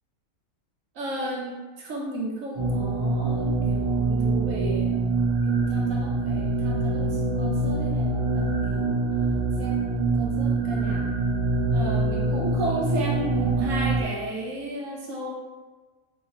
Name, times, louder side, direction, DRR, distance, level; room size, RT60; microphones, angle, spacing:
voice 1, 0.9-5.1 5.5-9.0 9.6-11.1 11.7-15.3, right 1 dB, 70° right, -2 dB, 0.9 m, -34 dB
sound 1, 2.5-14.0, right 3 dB, 40° right, 0.4 m, -25 dB
3.1 x 2.7 x 2.8 m, 1.3 s
omnidirectional pair, 1.6 m